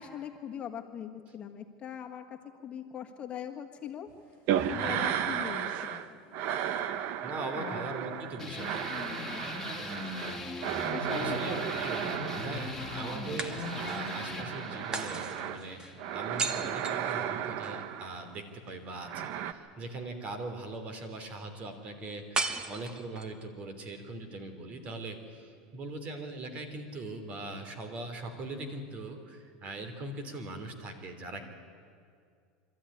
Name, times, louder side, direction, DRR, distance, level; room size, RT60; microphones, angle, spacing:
voice 1, 0.0-4.1 4.7-6.4 7.6-7.9 8.9-9.4 10.9-11.7 12.5-12.6, left 9 dB, 35° left, 3 dB, 1.6 m, -41 dB
sound 1, 4.5-6.1 6.3-15.6 16.0-18.3 19.0-19.5, right 10 dB, 60° right, 1.0 m, -34 dB
voice 2, 4.7-5.2 7.2-8.9 11.2-12.1 12.3-15.8 16.1-31.4, right 2 dB, 40° right, 7 dB, 3.2 m, -41 dB
sound 2, 8.4-17.4, left 2 dB, 5° left, 2.8 m, -40 dB
sound 3, 10.3-11.3 13.4-14.1 14.9-17.8 22.3-23.4, right 3 dB, 20° right, 1.5 m, -37 dB
24.5 x 13.5 x 9.9 m, 2.3 s
supercardioid pair, 120°, 4 cm